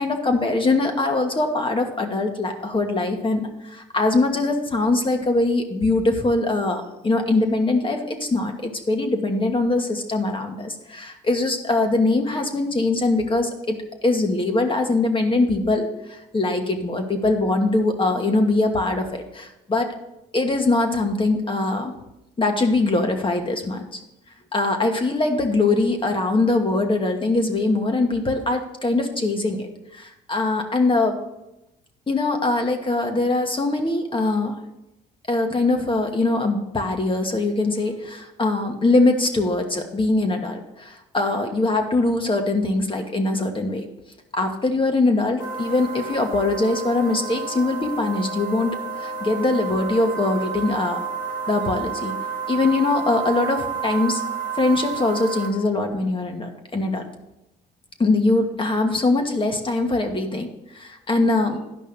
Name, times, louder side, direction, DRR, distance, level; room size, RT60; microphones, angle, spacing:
voice 1, 0.0-13.8 14.0-19.9 20.3-21.9 22.4-24.0 24.5-31.2 32.1-34.6 35.3-43.8 44.3-51.1 51.5-52.1 52.5-54.2 54.5-57.0 58.0-61.6, left 2 dB, 25° left, 4 dB, 1.4 m, -22 dB
sound 1, 45.4-55.5, right 6 dB, 85° left, 1.4 m, -31 dB
10.5 x 5.4 x 5.4 m, 0.90 s
hypercardioid pair, 60°, 20 cm